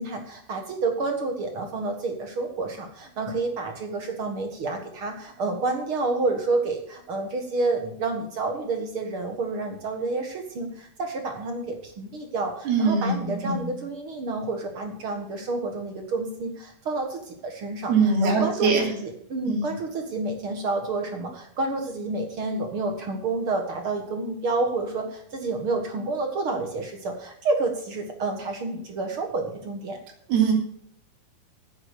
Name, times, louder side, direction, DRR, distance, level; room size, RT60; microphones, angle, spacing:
voice 1, 0.0-18.7 19.0-30.0, right 3 dB, 50° right, 4 dB, 1.8 m, -29 dB
voice 2, 12.7-13.7 17.9-18.9 19.5-19.7 30.3-30.5, right 4 dB, 85° right, 0 dB, 5.0 m, -22 dB
9.8 x 9.6 x 6.7 m, 0.67 s
omnidirectional pair, 4.4 m